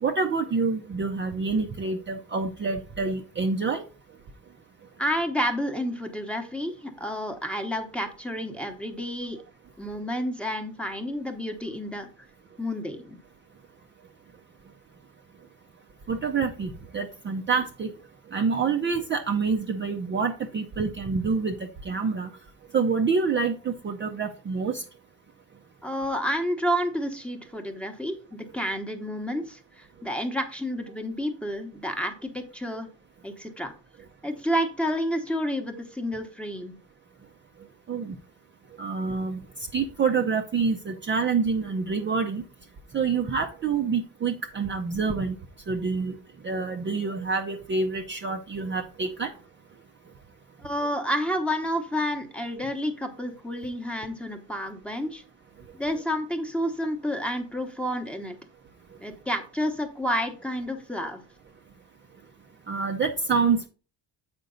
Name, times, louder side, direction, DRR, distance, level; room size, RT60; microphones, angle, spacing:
voice 1, 0.0-3.8 16.1-17.9 18.3-22.3 22.7-24.8 37.9-38.2 38.8-39.4 39.7-42.4 42.9-45.4 45.7-46.2 46.4-49.3 62.7-63.7, right 5 dB, 25° right, 3 dB, 0.5 m, -27 dB
voice 2, 5.0-9.4 9.8-12.1 12.6-13.2 25.8-32.9 33.2-33.7 34.2-36.7 50.6-55.2 55.7-58.4 59.0-61.2, equal, 5° left, 5 dB, 0.9 m, -30 dB
8.1 x 5.2 x 3.8 m, 0.36 s
cardioid pair, 165°, 44 cm